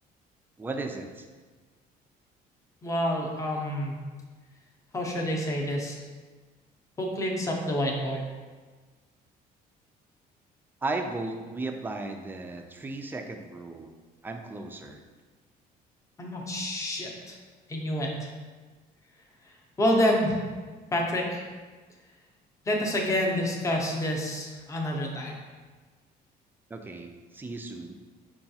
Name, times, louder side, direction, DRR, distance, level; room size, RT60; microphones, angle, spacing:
voice 1, 0.6-1.3 10.8-13.9 14.2-15.0 26.7-27.9, right 2 dB, 10° right, 4 dB, 0.3 m, -35 dB
voice 2, 2.8-4.0 4.9-6.0 7.0-8.3 16.2-17.4 17.7-18.3 19.8-20.4 20.9-21.4 22.7-25.3, equal, 20° left, -1 dB, 0.7 m, -28 dB
5.6 x 2.3 x 2.7 m, 1.4 s
cardioid pair, 110°, 17 cm